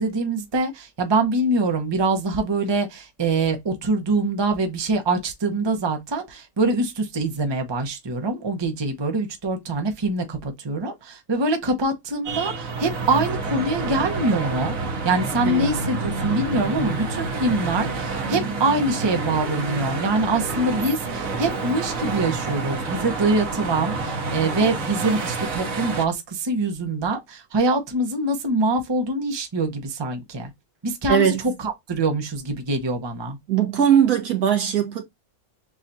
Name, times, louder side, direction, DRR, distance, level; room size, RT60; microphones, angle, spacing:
voice 1, 0.0-14.7 15.0-30.5 30.8-31.3 31.6-33.4, right 2 dB, 25° right, 0.7 m, -24 dB
sound 1, 12.2-26.0, right 3 dB, 65° right, 1.3 m, -28 dB
voice 2, 15.4-15.8 31.1-31.4 33.5-35.0, right 8 dB, 85° right, 1.8 m, -20 dB
7.1 x 2.4 x 2.7 m
omnidirectional pair, 1.6 m